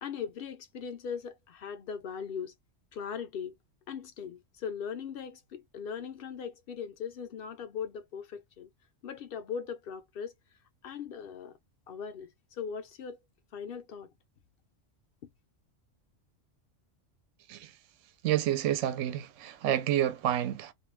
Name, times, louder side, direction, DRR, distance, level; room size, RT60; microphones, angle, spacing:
voice 1, 0.0-2.5 2.9-3.6 3.9-8.7 9.0-10.3 10.8-11.6 11.9-13.2 13.5-14.1, left 7 dB, 60° left, 0.7 m, -39 dB
voice 2, 18.2-20.7, right 11 dB, 75° right, 0.9 m, -29 dB
2.4 x 2.2 x 3.2 m
omnidirectional pair, 1.3 m